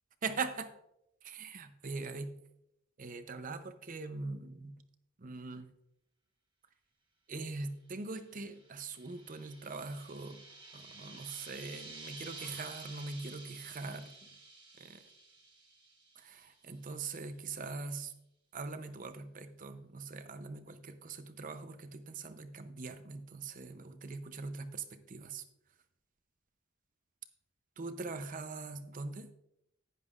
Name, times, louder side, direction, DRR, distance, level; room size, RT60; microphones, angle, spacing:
voice 1, 0.2-0.8 1.2-2.3 3.0-4.8 5.2-5.7 7.3-10.4 10.7-14.4 14.8-15.0 16.2-18.1 18.5-25.4 27.8-29.3, right 4 dB, 40° right, 10 dB, 0.7 m, -42 dB
sound 1, 8.3-16.6, right 3 dB, 25° right, 1.7 m, -51 dB
10.5 x 10.0 x 2.5 m, 0.81 s
head